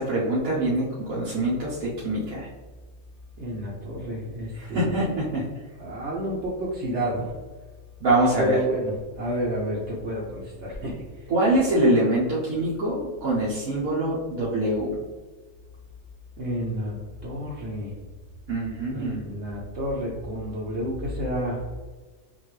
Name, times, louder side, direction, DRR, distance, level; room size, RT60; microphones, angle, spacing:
voice 1, 0.0-2.5 4.6-5.5 8.0-8.6 11.3-15.0 18.5-19.2, right 1 dB, 90° right, -8 dB, 1.4 m, -24 dB
voice 2, 3.4-5.0 5.8-7.3 8.4-11.3 16.4-17.9 18.9-21.6, right 1 dB, 60° right, -5 dB, 1.0 m, -30 dB
5.8 x 2.6 x 3.1 m, 1.3 s
omnidirectional pair, 1.4 m